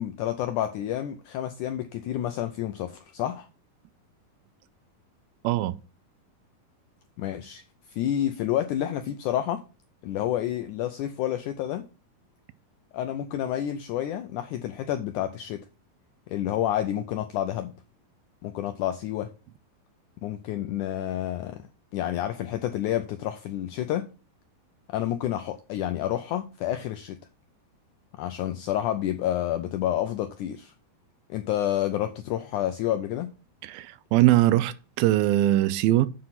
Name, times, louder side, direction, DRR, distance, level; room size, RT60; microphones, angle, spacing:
voice 1, 0.0-3.5 7.2-7.6 7.9-9.6 10.0-11.9 12.9-15.7 16.3-17.7 18.4-19.3 20.2-21.7 21.9-24.1 24.9-27.2 28.2-30.7 31.3-33.3, left 11 dB, 85° left, 1.7 m, -29 dB
voice 2, 5.4-5.8 33.6-36.1, right 15 dB, 85° right, 2.4 m, -21 dB
7.6 x 6.0 x 5.7 m
omnidirectional pair, 4.2 m